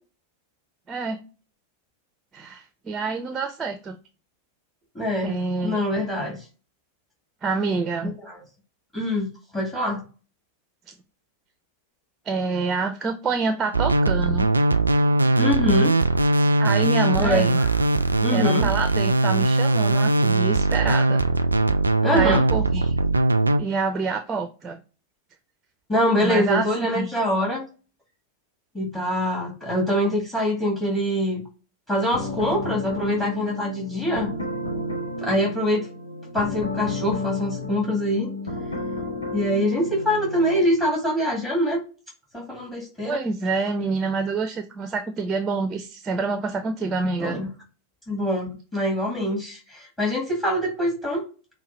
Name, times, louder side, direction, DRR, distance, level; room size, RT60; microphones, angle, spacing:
voice 1, 0.9-1.2 2.3-4.0 5.2-5.8 7.4-8.2 12.3-14.5 16.6-17.6 18.3-21.2 22.1-22.9 23.6-24.8 26.2-27.1 43.0-47.4, right 4 dB, 20° right, 7 dB, 0.6 m, -27 dB
voice 2, 4.9-5.4 5.6-6.4 8.2-8.4 8.9-10.0 15.4-16.0 17.2-17.7 18.2-18.7 22.0-22.4 25.9-27.6 28.7-31.4 31.9-34.3 35.2-35.9 36.3-38.3 39.3-41.8 42.3-43.2 47.2-47.5 48.1-51.2, equal, 15° left, -2 dB, 1.9 m, -24 dB
sound 1, 13.7-23.6, right 2 dB, 80° right, 0.3 m, -20 dB
sound 2, 32.1-40.6, left 2 dB, 80° left, 0.9 m, -31 dB
5.6 x 2.2 x 4.3 m, 0.33 s
figure-of-eight pair, 90°, 0 cm